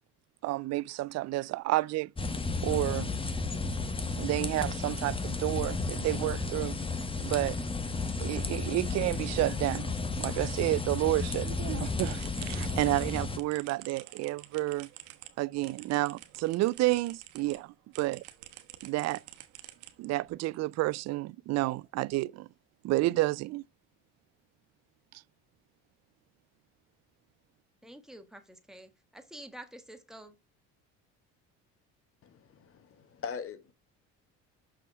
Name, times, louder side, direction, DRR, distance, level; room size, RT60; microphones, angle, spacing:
voice 1, 0.4-2.1 2.6-3.1 4.2-6.8 7.2-7.6 8.2-9.9 10.2-14.9 15.4-18.2 18.8-19.2 20.0-22.5 22.8-23.6, right 18 dB, 55° right, 0.4 m, -30 dB
sound 1, 2.2-13.4, left 3 dB, 15° left, 1.2 m, -33 dB
sound 2, 12.0-17.6 17.9-20.3, right 14 dB, 75° right, 1.2 m, -49 dB
voice 2, 27.8-30.3, right 1 dB, ahead, 1.7 m, -48 dB
voice 3, 32.2-33.7, left 6 dB, 45° left, 1.5 m, -41 dB
6.4 x 5.8 x 4.6 m
supercardioid pair, 90°, 32 cm